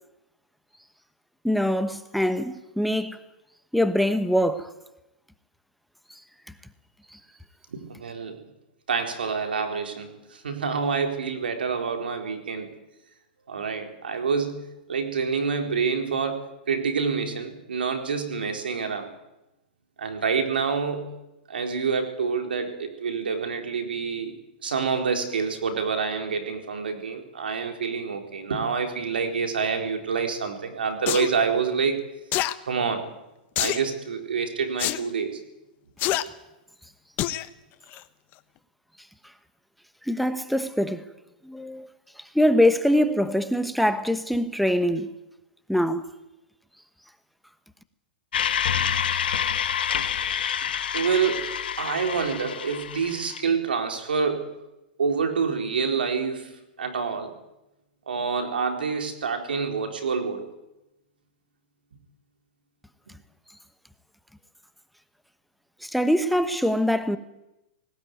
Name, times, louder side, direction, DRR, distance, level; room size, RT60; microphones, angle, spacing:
voice 1, 1.4-3.2 3.7-4.7 6.1-6.2 7.1-7.2 40.0-41.0 41.4-41.9 42.2-45.1 45.7-46.0 65.8-67.2, equal, ahead, 1.2 m, -23 dB
voice 2, 7.7-8.4 8.9-12.7 13.5-19.1 20.0-21.1 21.5-32.0 32.7-33.0 33.6-35.4 50.9-54.6 55.0-56.5 56.8-57.3 58.1-60.5, right 5 dB, 85° right, 4.1 m, -27 dB
sound 1, 31.1-31.3 32.3-32.5 33.6-33.9 34.8-35.0 36.0-36.2 37.2-37.5 37.9-38.0, left 15 dB, 40° left, 1.2 m, -25 dB
sound 2, 48.3-53.4, left 8 dB, 80° left, 1.6 m, -27 dB
18.5 x 18.5 x 9.5 m
hypercardioid pair, 120°, 5 cm